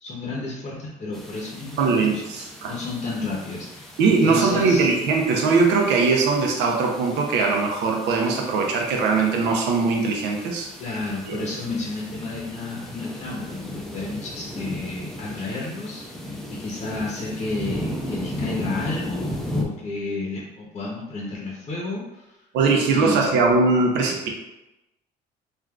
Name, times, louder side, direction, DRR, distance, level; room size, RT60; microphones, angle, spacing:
voice 1, 0.0-4.9 10.8-22.4 22.9-23.3, left 3 dB, 40° left, -4 dB, 0.7 m, -32 dB
sound 1, 1.1-19.7, left 1 dB, ahead, 0.5 m, -36 dB
voice 2, 1.8-2.7 4.0-10.7 11.3-11.4 22.5-24.3, right 4 dB, 85° right, 1 dB, 0.6 m, -21 dB
3.5 x 2.4 x 2.3 m, 0.95 s
cardioid pair, 110°, 17 cm